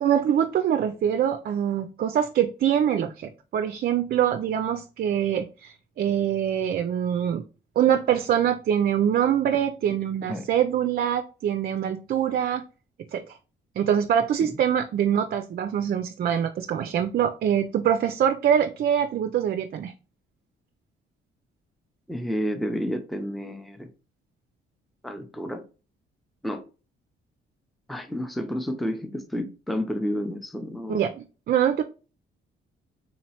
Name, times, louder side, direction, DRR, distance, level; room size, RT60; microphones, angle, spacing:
voice 1, 0.0-7.4 7.8-12.6 13.1-13.4 13.8-19.9 30.9-31.8, right 9 dB, 50° right, 8 dB, 0.4 m, -24 dB
voice 2, 22.1-23.9 25.0-25.6 26.4-26.6 27.9-31.0, equal, ahead, 7 dB, 0.5 m, -30 dB
3.8 x 2.9 x 2.8 m, 0.35 s
cardioid pair, 90°, 20 cm